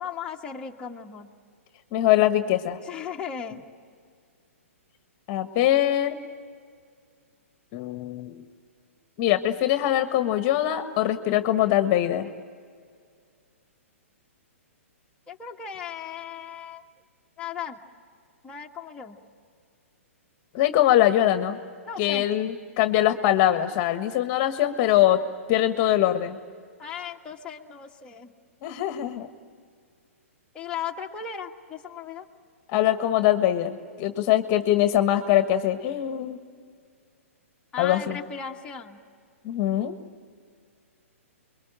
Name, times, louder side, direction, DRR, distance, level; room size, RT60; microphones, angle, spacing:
voice 1, 0.0-1.3 2.8-3.6 15.3-16.8 17.4-17.8 18.4-19.2 21.8-22.3 26.8-28.3 30.5-32.3 37.7-39.0, left 7 dB, 10° left, -2 dB, 1.6 m, -36 dB
voice 2, 1.9-2.8 5.3-6.2 7.7-8.4 9.2-12.3 20.5-21.6 22.0-25.2 25.5-26.4 28.6-29.3 32.7-36.4 37.8-38.2 39.4-39.9, left 12 dB, 35° left, 10 dB, 1.4 m, -22 dB
29.5 x 23.0 x 8.9 m, 2.1 s
hypercardioid pair, 125°, 8 cm